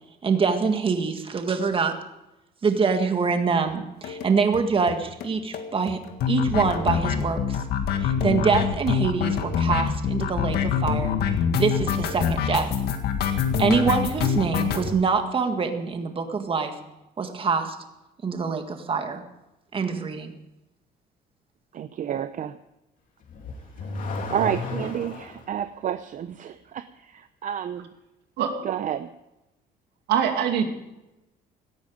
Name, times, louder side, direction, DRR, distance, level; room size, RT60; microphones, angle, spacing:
voice 1, 0.2-1.9 2.6-6.0 6.3-7.6 8.0-11.2 11.6-12.7 13.2-16.7 17.2-17.8 18.2-19.2 19.7-20.3, right 5 dB, 30° right, 1.8 m, -25 dB
sound 1, 4.0-4.3 4.5-4.6 4.9-5.0 5.2-5.3 5.5-14.9, left 7 dB, 70° left, 1.9 m, -25 dB
voice 2, 21.7-22.6 24.3-27.9 28.6-29.1, right 9 dB, 50° right, 0.7 m, -30 dB
Car / Accelerating revving vroom, 23.2-25.5, left 3 dB, 55° left, 3.2 m, -33 dB
voice 3, 30.1-30.6, right 8 dB, 80° right, 2.5 m, -22 dB
17.5 x 13.0 x 5.2 m
cardioid pair, 110°, 17 cm